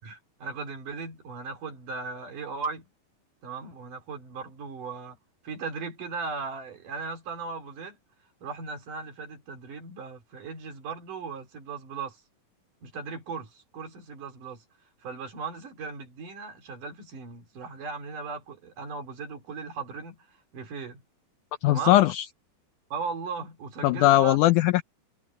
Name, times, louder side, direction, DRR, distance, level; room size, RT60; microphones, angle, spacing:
voice 1, 0.0-2.9 3.4-5.2 5.4-8.0 8.4-12.2 12.8-14.6 15.0-21.0 21.7-22.0 22.9-24.4, right 4 dB, 65° right, 4.9 m, -37 dB
voice 2, 21.6-22.2 23.8-24.8, left 15 dB, 80° left, 1.8 m, -20 dB
omnidirectional pair, 4.1 m